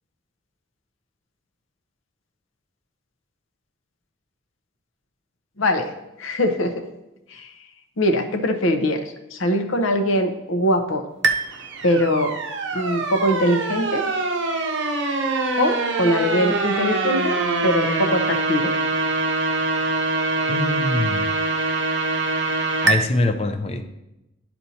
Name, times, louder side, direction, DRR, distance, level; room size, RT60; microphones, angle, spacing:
voice 1, 5.6-5.9 6.2-6.7 7.3-7.5 8.0-9.0 9.3-11.0 11.8-12.3 12.7-14.0 15.6-18.7, equal, 75° left, 6 dB, 0.8 m, -22 dB
sound 1, 11.2-23.0, right 3 dB, 60° right, 0.6 m, -24 dB
voice 2, 20.5-21.3 22.8-23.8, left 2 dB, 30° left, 8 dB, 0.5 m, -23 dB
12.0 x 4.4 x 2.8 m, 0.92 s
head